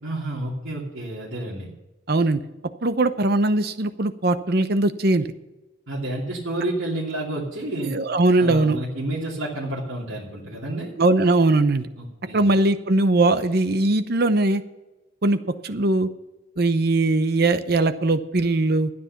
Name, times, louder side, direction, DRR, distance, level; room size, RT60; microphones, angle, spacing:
voice 1, 0.0-1.7 5.9-7.9 8.4-10.9 12.0-12.5, right 1 dB, 75° right, -7 dB, 2.8 m, -30 dB
voice 2, 2.1-2.4 2.8-5.3 7.8-8.8 11.0-11.9 12.3-14.6 15.2-16.1 16.6-18.9, right 2 dB, 50° right, 11 dB, 0.8 m, -20 dB
13.0 x 9.7 x 5.8 m, 1.0 s
head